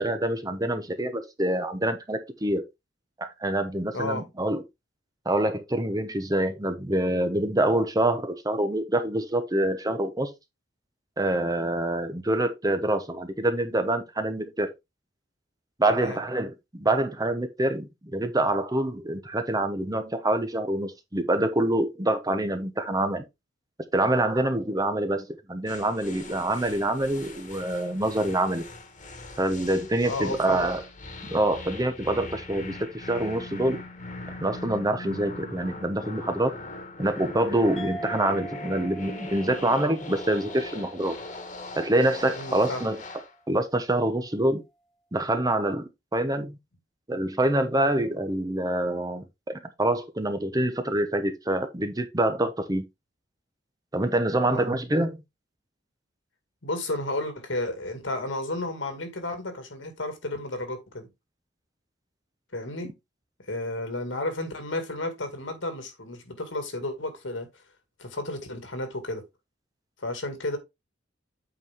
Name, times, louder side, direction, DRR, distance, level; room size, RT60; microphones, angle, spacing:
voice 1, 0.0-2.6 3.2-4.6 5.2-10.3 11.2-14.7 15.8-23.2 23.9-28.6 29.4-30.8 31.3-33.8 34.4-36.5 37.0-41.2 41.8-43.0 43.5-44.6 45.1-45.8 46.1-46.6 47.1-52.8 53.9-55.2, right 1 dB, 20° right, 0.9 m, -26 dB
voice 2, 3.9-4.2 15.9-16.2 30.1-30.6 42.3-42.8 54.4-54.8 56.6-61.1 62.5-62.9 63.5-67.5 68.0-69.2 70.0-70.6, left 2 dB, 75° left, 2.2 m, -32 dB
sound 1, 25.7-43.3, left 2 dB, 40° left, 1.7 m, -41 dB
sound 2, 37.8-42.7, right 1 dB, ahead, 2.0 m, -43 dB
8.2 x 4.8 x 3.6 m
head